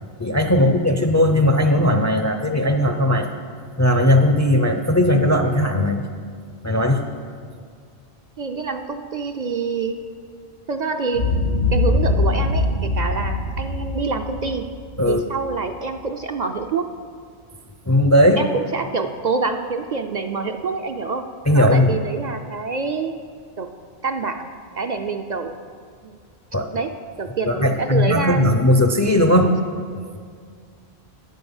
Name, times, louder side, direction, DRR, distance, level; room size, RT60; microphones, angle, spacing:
voice 1, 0.2-3.3 3.8-6.1 6.6-7.0 15.0-15.2 17.9-18.4 21.5-22.1 26.5-26.7 27.4-29.5, left 1 dB, 25° left, 6 dB, 0.4 m, -17 dB
voice 2, 8.4-10.0 10.7-11.3 11.7-14.7 15.1-16.9 18.4-21.2 21.5-23.2 23.6-23.7 24.0-25.5 26.0-26.2 26.7-26.9 27.2-28.5, right 4 dB, 55° right, 5 dB, 0.5 m, -26 dB
Boom, 11.1-15.4, left 2 dB, 80° left, 2.0 m, -22 dB
9.3 x 9.3 x 7.1 m, 2.1 s
omnidirectional pair, 1.1 m